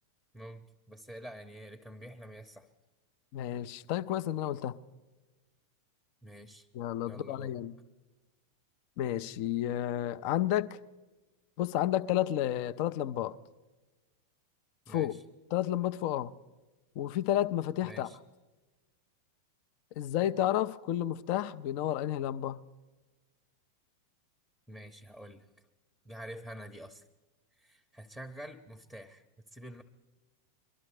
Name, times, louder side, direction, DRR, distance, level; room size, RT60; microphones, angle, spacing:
voice 1, 0.3-2.7 6.2-6.7 7.0-7.6 14.9-15.2 17.8-18.2 24.7-25.5 26.0-27.1 27.5-29.2 29.5-29.8, right 1 dB, 5° left, 0.8 m, -47 dB
voice 2, 3.3-4.8 6.7-7.7 9.0-10.8 11.6-13.3 14.9-15.1 15.5-16.3 17.0-18.1 20.0-22.6, left 12 dB, 45° left, 0.5 m, -31 dB
22.5 x 12.5 x 3.3 m
figure-of-eight pair, 90°, 0 cm